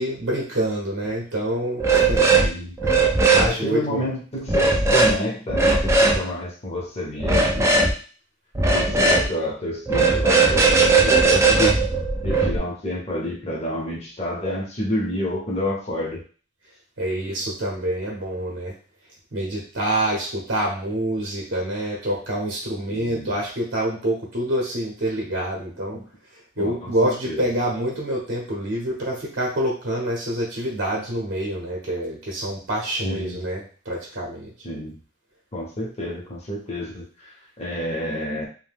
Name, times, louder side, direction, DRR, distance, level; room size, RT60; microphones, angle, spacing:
voice 1, 0.0-2.3 2.8-4.0 17.0-18.7 19.3-26.0 26.6-34.5, right 1 dB, 60° right, -3 dB, 0.7 m, -26 dB
sound 1, 1.8-2.5 2.8-3.5 4.5-5.1 5.5-6.2 7.2-7.9 8.5-9.3 9.9-12.6, right 3 dB, 15° right, 0.4 m, -18 dB
voice 2, 2.3-2.8 3.4-7.9 8.7-11.8 12.2-16.2 22.9-23.3 25.9-26.0 26.6-27.5 33.0-33.4 34.6-35.0 35.5-37.3 37.6-38.5, left 1 dB, 35° left, -3 dB, 0.8 m, -29 dB
2.6 x 2.1 x 3.4 m, 0.40 s
head